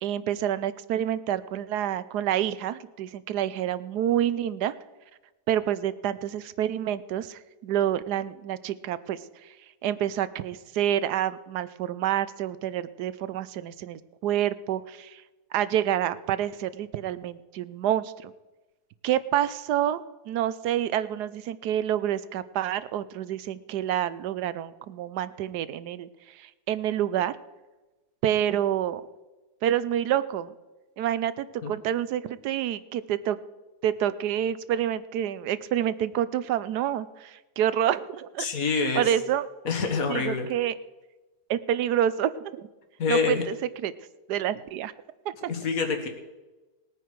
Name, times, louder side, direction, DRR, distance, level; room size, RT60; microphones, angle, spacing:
voice 1, 0.0-4.7 5.5-9.2 9.8-15.2 15.5-18.3 19.0-26.1 26.4-27.4 28.2-29.0 29.6-30.5 31.0-33.4 33.8-38.5 38.7-39.4 40.1-40.7 41.5-42.7 43.1-43.5 43.8-43.9 44.3-44.9, right 11 dB, 85° right, 16 dB, 1.3 m, -28 dB
voice 2, 38.4-39.1 39.7-40.5 43.0-43.5 45.5-46.1, left 4 dB, 60° left, 5 dB, 2.0 m, -26 dB
19.5 x 9.2 x 4.7 m, 1.1 s
omnidirectional pair, 1.7 m